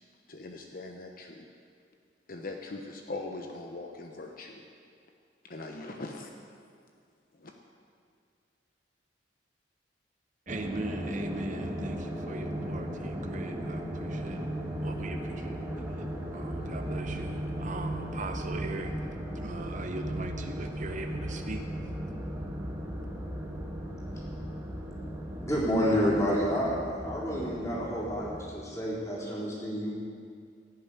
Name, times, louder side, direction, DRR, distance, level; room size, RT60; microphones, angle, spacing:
voice 1, 0.3-1.5 2.3-4.6 5.4-6.3 7.4-7.5, left 2 dB, 50° left, 3 dB, 1.0 m, -41 dB
sound 1, 10.5-28.5, right 1 dB, 15° right, 1.7 m, -36 dB
voice 2, 10.5-14.5 14.8-16.1 16.3-18.9 19.3-21.7, right 2 dB, 45° right, 5 dB, 0.8 m, -40 dB
voice 3, 25.4-26.7 27.0-29.9, equal, 15° left, -6 dB, 4.1 m, -29 dB
16.0 x 7.1 x 9.6 m, 2.2 s
head